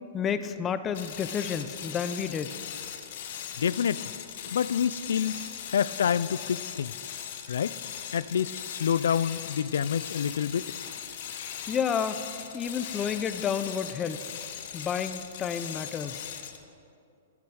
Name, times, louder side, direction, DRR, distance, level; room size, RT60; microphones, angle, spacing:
voice 1, 0.1-2.6 11.7-12.2 12.5-14.2 14.7-16.3, left 7 dB, 15° left, 12 dB, 0.4 m, -30 dB
sound 1, 0.9-16.7, left 9 dB, 45° left, 0.9 m, -39 dB
voice 2, 3.6-4.1 4.5-5.4 5.7-7.1 7.5-7.7 8.1-10.7, left 8 dB, 85° left, 18 dB, 0.3 m, -27 dB
15.0 x 10.5 x 4.7 m, 2.6 s
hypercardioid pair, 170°, 0 cm